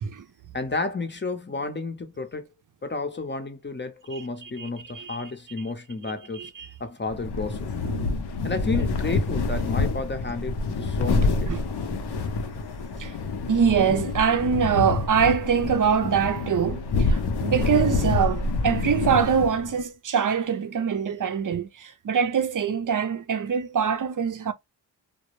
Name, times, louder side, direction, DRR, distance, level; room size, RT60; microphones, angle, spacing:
voice 1, 0.5-2.5 2.8-6.4 6.8-7.7 8.4-11.5, left 3 dB, 25° left, 0.7 m, -31 dB
voice 2, 4.6-5.3 6.3-6.7 7.8-8.2 11.5-11.6 13.0-13.2 13.5-24.5, right 7 dB, 45° right, 0.6 m, -24 dB
sound 1, 7.1-19.8, left 3 dB, 65° left, 0.6 m, -27 dB
2.1 x 2.0 x 3.0 m
cardioid pair, 45°, 44 cm